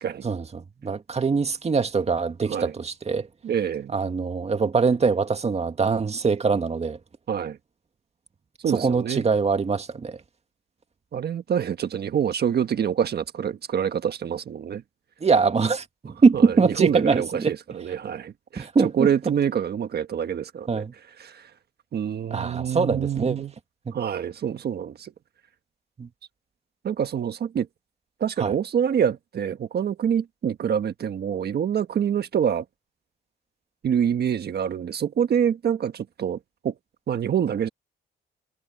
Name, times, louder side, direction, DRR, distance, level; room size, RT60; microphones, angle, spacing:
voice 1, 0.2-3.3 3.9-7.0 8.7-10.2 15.2-17.5 18.6-19.3 20.7-20.9 22.3-23.5 23.9-24.0 26.0-26.1 28.4-28.5, right 5 dB, 30° right, 2.0 m, -23 dB
voice 2, 3.4-3.9 7.3-7.6 8.6-9.2 11.1-14.8 16.3-20.8 21.2-21.5 21.9-23.5 23.9-25.1 26.8-27.7 28.2-32.6 33.8-36.7 37.1-37.7, right 8 dB, 55° right, 1.4 m, -26 dB
cardioid pair, 90°, 20 cm